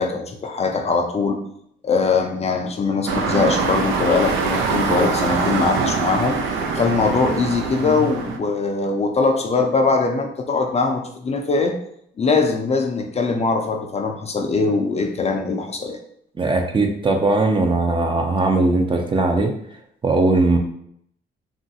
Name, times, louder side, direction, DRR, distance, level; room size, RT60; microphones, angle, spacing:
voice 1, 0.0-1.4 1.8-6.4 6.7-11.7 12.2-16.0, left 4 dB, 35° left, 3 dB, 0.4 m, -21 dB
sound 1, 3.1-8.4, right 4 dB, 85° right, 0.4 m, -23 dB
voice 2, 16.4-19.5 20.0-20.6, right 2 dB, 25° right, 3 dB, 0.5 m, -19 dB
2.9 x 2.4 x 2.7 m, 0.69 s
cardioid pair, 90°, 20 cm